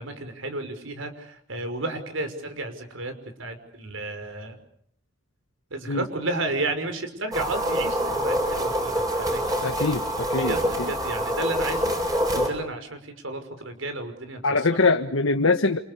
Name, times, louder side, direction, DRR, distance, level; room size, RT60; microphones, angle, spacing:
voice 1, 0.0-3.1 3.4-4.6 5.7-9.6 10.4-14.4, right 2 dB, 75° right, 8 dB, 5.8 m, -32 dB
sound 1, 7.3-12.5, equal, 20° right, 7.6 m, -26 dB
voice 2, 9.6-10.9 14.4-15.8, left 3 dB, 85° left, 6 dB, 1.4 m, -23 dB
29.0 x 28.0 x 7.1 m, 0.64 s
head